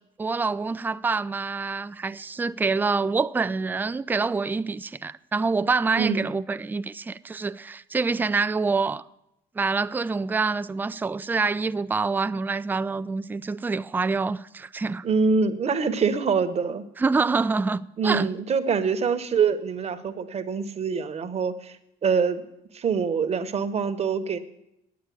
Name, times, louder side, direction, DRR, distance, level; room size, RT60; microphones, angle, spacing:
voice 1, 0.2-9.0 9.6-15.0 17.0-18.3, right 4 dB, 10° right, 0.3 m, -26 dB
voice 2, 5.9-6.3 15.0-16.9 18.0-21.8 22.0-22.4 22.7-24.4, right 5 dB, 40° right, 1.1 m, -25 dB
9.6 x 8.7 x 8.5 m
cardioid pair, 110°, 17 cm